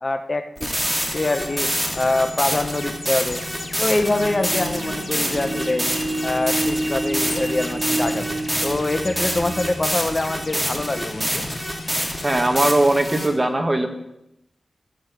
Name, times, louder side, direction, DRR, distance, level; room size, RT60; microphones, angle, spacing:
voice 1, 0.0-0.7 1.1-3.4 3.8-5.9 6.2-11.4, left 2 dB, 30° left, 8 dB, 1.0 m, -24 dB
sound 1, 0.6-13.3, equal, 5° right, 3.0 m, -27 dB
sound 2, 0.7-13.3, left 3 dB, 55° left, 2.1 m, -37 dB
sound 3, 4.0-11.5, right 1 dB, 55° right, 2.7 m, -30 dB
voice 2, 12.2-13.9, right 1 dB, 20° right, 5 dB, 1.8 m, -19 dB
14.5 x 8.1 x 9.5 m, 0.84 s
wide cardioid pair, 110°, 0 cm